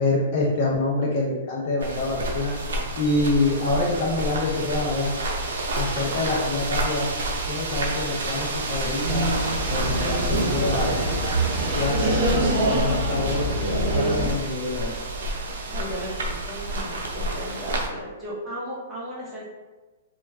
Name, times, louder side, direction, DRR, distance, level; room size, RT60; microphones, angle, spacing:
voice 1, 0.0-2.5 3.0-5.1 5.8-7.1 7.5-9.3 9.7-10.9 11.8-13.5 13.9-14.9, left 2 dB, 35° left, -3 dB, 0.5 m, -26 dB
sound 1, 1.8-17.9, right 2 dB, 85° right, 0.6 m, -30 dB
sound 2, 9.0-14.3, right 1 dB, 45° right, 0.8 m, -24 dB
voice 2, 15.7-19.4, equal, 10° right, -8 dB, 0.8 m, -35 dB
2.4 x 2.2 x 3.2 m, 1.2 s
hypercardioid pair, 165°, 0 cm